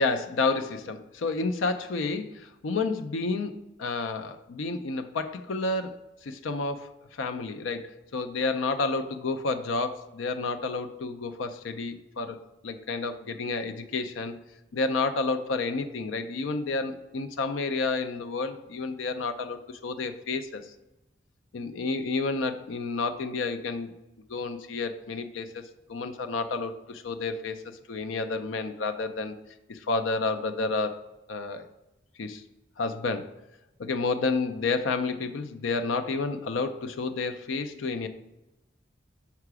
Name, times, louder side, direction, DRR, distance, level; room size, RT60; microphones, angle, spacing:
voice 1, 0.0-14.3 14.7-20.6 21.5-23.9 24.3-25.6 25.9-27.6 27.9-29.3 29.7-31.0 31.3-31.7 32.2-32.4 32.8-33.3 33.8-38.1, left 3 dB, 90° left, 8 dB, 0.5 m, -30 dB
5.8 x 4.8 x 4.7 m, 0.95 s
head